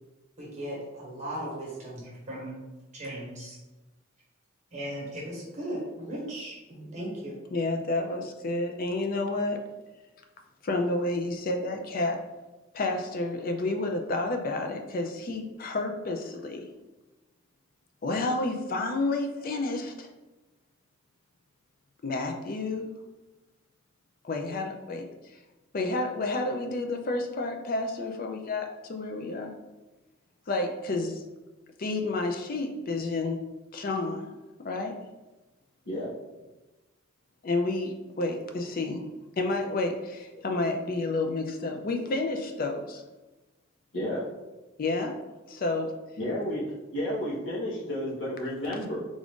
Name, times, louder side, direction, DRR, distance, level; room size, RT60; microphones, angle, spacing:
voice 1, 0.4-2.6 2.9-3.6 4.7-7.4, right 1 dB, 35° right, -6 dB, 1.0 m, -37 dB
voice 2, 7.5-9.6 10.6-12.2 12.7-16.7 18.0-20.1 22.0-22.9 24.2-25.4 25.7-29.5 30.5-31.2 31.8-33.4 33.7-34.3 34.6-35.0 37.4-39.1 39.4-43.0 44.8-45.2 45.5-45.9, left 2 dB, 45° left, 4 dB, 0.4 m, -30 dB
voice 3, 43.9-44.2 46.2-46.6 46.9-49.0, equal, 60° left, -6 dB, 1.1 m, -31 dB
3.6 x 2.5 x 3.5 m, 1.1 s
head